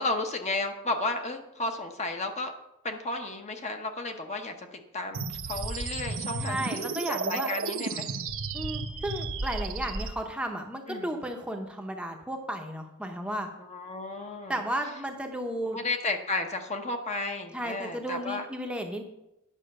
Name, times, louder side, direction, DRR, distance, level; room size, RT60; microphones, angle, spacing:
voice 1, 0.0-2.5 2.8-8.2 10.9-11.2 13.6-14.6 15.7-18.5, left 2 dB, 30° left, 5 dB, 0.9 m, -33 dB
sound 1, 5.1-10.1, right 4 dB, 65° right, 0.9 m, -33 dB
voice 2, 6.4-7.5 8.5-13.5 14.5-15.8 17.5-19.0, right 1 dB, 5° right, 3 dB, 0.8 m, -34 dB
10.0 x 5.8 x 6.5 m, 0.90 s
head